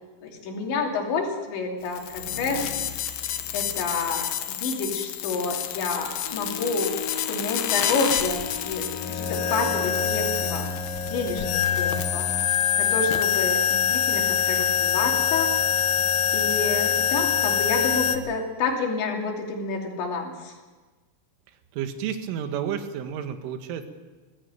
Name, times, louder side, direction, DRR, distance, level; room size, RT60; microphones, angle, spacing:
voice 1, 0.2-2.7 3.5-10.8 11.1-12.3 12.8-15.5 16.3-20.5, left 4 dB, 65° left, 1 dB, 5.0 m, -29 dB
sound 1, 1.9-18.2, left 8 dB, 85° left, 2.0 m, -26 dB
Wind instrument woodwind instrument, 6.2-10.4, left 9 dB, 45° left, 5.6 m, -38 dB
voice 2, 21.7-24.0, right 8 dB, 75° right, 7 dB, 3.9 m, -31 dB
21.0 x 16.0 x 9.0 m, 1.3 s
omnidirectional pair, 5.9 m